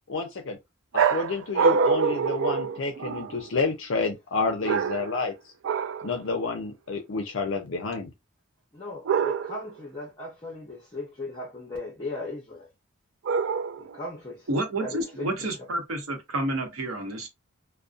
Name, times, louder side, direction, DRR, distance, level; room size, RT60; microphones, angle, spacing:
voice 1, 0.1-0.6 0.9-5.3 6.0-8.1, left 4 dB, 65° left, 0.4 m, -29 dB
sound 1, 0.9-3.4 4.6-5.3 5.6-6.1 9.0-9.7 13.2-14.0, right 5 dB, 65° right, 0.3 m, -25 dB
voice 2, 8.7-12.7 13.8-14.5 14.8-15.7, left 2 dB, 20° left, 0.6 m, -37 dB
voice 3, 14.5-17.3, right 1 dB, 80° right, 0.8 m, -29 dB
2.5 x 2.1 x 2.4 m
head